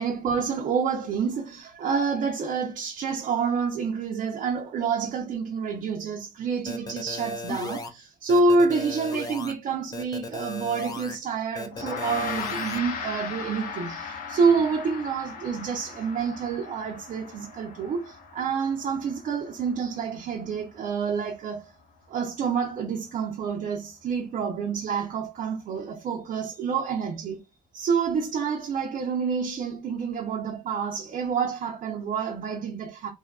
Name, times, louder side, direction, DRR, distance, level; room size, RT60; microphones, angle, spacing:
voice 1, 0.0-21.6 22.1-27.4 27.7-33.1, right 5 dB, 50° right, 0.5 m, -28 dB
sound 1, 6.7-7.9 8.3-9.5 9.9-11.2 11.5-12.8, left 3 dB, 20° left, 0.4 m, -36 dB
Gong, 11.7-21.3, left 5 dB, 60° left, 0.7 m, -38 dB
2.7 x 2.3 x 2.2 m
cardioid pair, 110°, 17 cm